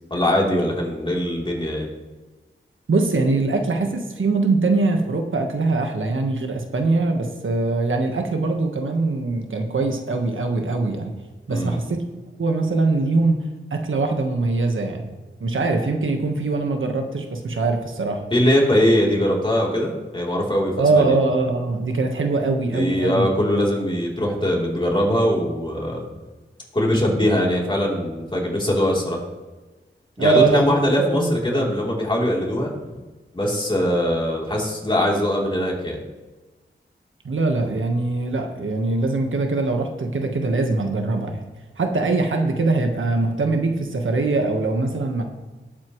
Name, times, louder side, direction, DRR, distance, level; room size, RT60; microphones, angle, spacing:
voice 1, 0.1-1.9 11.5-11.8 18.3-21.2 22.7-26.0 26.7-29.2 30.2-32.7 33.3-36.0, equal, 25° left, -3 dB, 3.4 m, -21 dB
voice 2, 2.9-11.1 11.5-12.0 12.4-13.4 13.7-15.0 15.4-18.2 20.8-23.3 30.2-31.7 37.2-41.5 41.8-45.2, right 3 dB, 85° right, 4 dB, 1.4 m, -22 dB
19.0 x 8.4 x 3.2 m, 1.2 s
wide cardioid pair, 90°, 20 cm